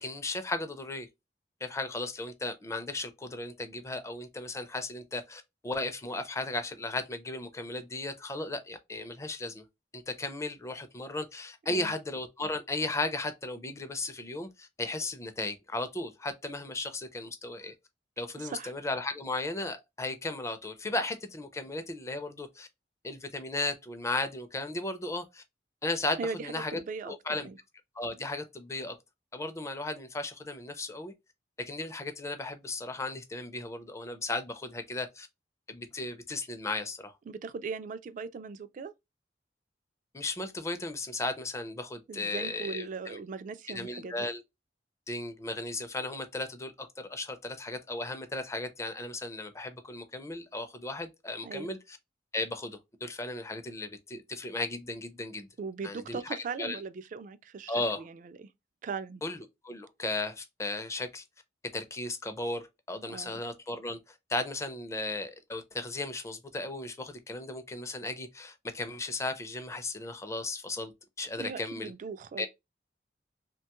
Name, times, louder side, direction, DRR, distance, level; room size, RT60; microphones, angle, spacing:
voice 1, 0.0-1.1 1.6-9.6 9.9-17.7 18.2-22.7 23.0-25.4 25.8-27.5 28.0-29.0 29.3-31.1 31.7-35.3 35.7-37.1 40.1-43.2 43.7-44.4 45.1-52.0 52.3-55.5 55.8-56.8 57.7-58.0 59.2-59.4 59.6-61.2 61.7-70.9 71.2-71.9 72.4-72.5, left 2 dB, 15° left, 0.4 m, -35 dB
voice 2, 18.4-18.7 26.2-27.1 27.4-27.6 37.3-38.9 42.1-44.3 51.4-51.7 55.6-58.3 58.8-59.2 63.1-63.4 71.4-72.5, right 5 dB, 45° right, 0.3 m, -39 dB
2.9 x 2.2 x 2.9 m
head